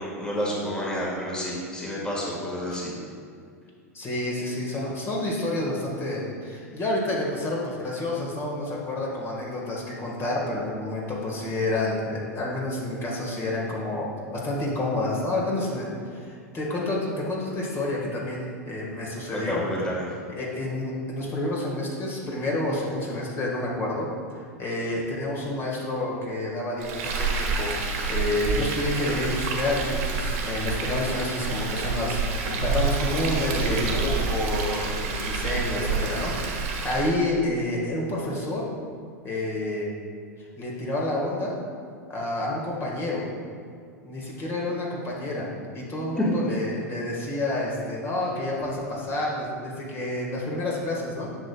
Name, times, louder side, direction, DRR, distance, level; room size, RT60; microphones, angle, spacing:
voice 1, 0.0-2.9 19.3-20.0 46.2-46.3, equal, 10° left, -4 dB, 1.7 m, -29 dB
voice 2, 3.9-19.6 20.3-24.1 24.3-27.8 28.1-38.7 39.2-39.9 40.4-41.6 42.1-43.3 44.0-51.3, left 1 dB, 30° left, -3 dB, 1.7 m, -29 dB
Frying (food), 26.8-37.2, right 4 dB, 60° right, 1.5 m, -28 dB
10.5 x 6.8 x 2.3 m, 2.2 s
figure-of-eight pair, 90°, 9 cm